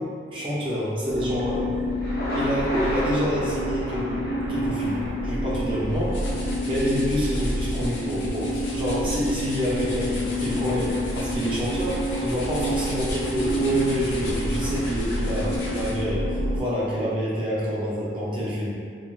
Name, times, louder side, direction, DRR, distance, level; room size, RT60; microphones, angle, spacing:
voice 1, 0.0-1.6 2.3-4.2 4.5-5.0 5.2-6.2 6.6-16.2 16.6-18.7, equal, 30° right, -8 dB, 0.6 m, -27 dB
sound 1, 1.1-16.6, equal, 80° right, 0.5 m, -28 dB
Thunder, 1.8-5.8, equal, 55° left, 0.9 m, -34 dB
sound 2, 5.7-16.1, left 1 dB, 75° left, 0.5 m, -36 dB
3.4 x 2.2 x 2.3 m, 2.2 s
head